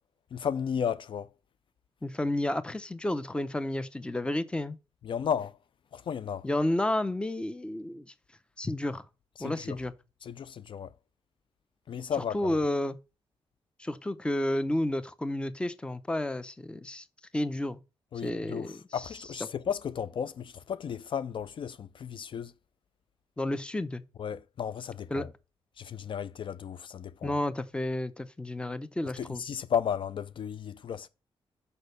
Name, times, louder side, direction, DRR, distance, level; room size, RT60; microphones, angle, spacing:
voice 1, 0.3-1.3 5.0-5.5 5.9-6.4 9.4-9.8 10.2-10.9 11.9-12.6 18.1-22.5 24.2-25.3 25.8-27.3 29.2-31.1, left 8 dB, 55° left, 0.4 m, -34 dB
voice 2, 2.0-4.8 6.4-8.1 8.6-9.0 9.4-9.9 12.3-13.0 13.8-17.0 17.3-17.8 18.2-19.1 23.4-24.0 25.1-25.3 27.2-29.4, left 1 dB, 10° left, 0.6 m, -31 dB
6.3 x 5.4 x 6.7 m
wide cardioid pair, 135°, 10 cm